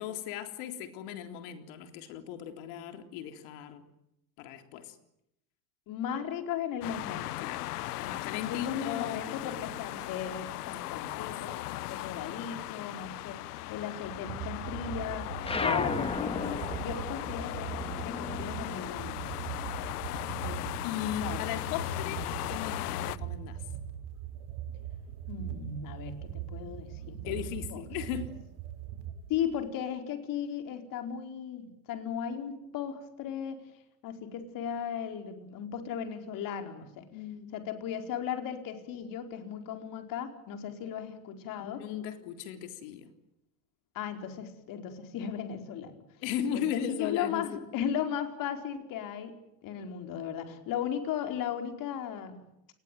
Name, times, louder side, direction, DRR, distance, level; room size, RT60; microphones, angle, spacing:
voice 1, 0.0-3.8 4.4-5.0 7.4-7.7 8.0-9.7 11.2-11.6 20.4-23.6 27.2-28.4 37.1-37.5 41.6-43.1 46.2-47.6, left 10 dB, 65° left, 7 dB, 3.7 m, -37 dB
voice 2, 5.9-7.3 8.3-15.3 15.6-19.3 21.2-21.5 25.3-27.4 27.7-27.8 29.3-33.6 34.0-37.1 37.5-41.8 43.9-46.0 46.5-49.3 49.6-52.4, left 8 dB, 45° left, 6 dB, 4.7 m, -36 dB
sound 1, 6.8-23.2, left 16 dB, 90° left, 1.0 m, -38 dB
sound 2, 14.0-29.7, right 11 dB, 60° right, 3.8 m, -41 dB
sound 3, 15.4-20.3 20.6-22.0, left 4 dB, 10° left, 2.0 m, -36 dB
28.5 x 20.5 x 9.3 m, 0.80 s
supercardioid pair, 125°, 44 cm